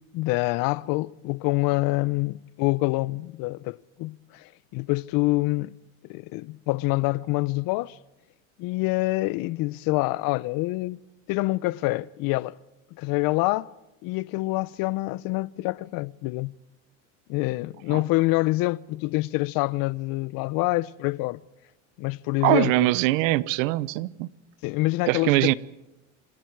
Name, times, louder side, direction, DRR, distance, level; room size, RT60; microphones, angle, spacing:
voice 1, 0.1-5.7 6.1-8.0 8.6-11.0 11.3-12.5 13.0-13.7 14.0-16.5 17.3-21.4 22.0-22.9 24.6-25.5, left 21 dB, 60° left, 0.7 m, -26 dB
voice 2, 22.4-24.3 25.0-25.5, right 19 dB, 85° right, 0.9 m, -22 dB
27.0 x 26.0 x 4.7 m
supercardioid pair, 115°, 38 cm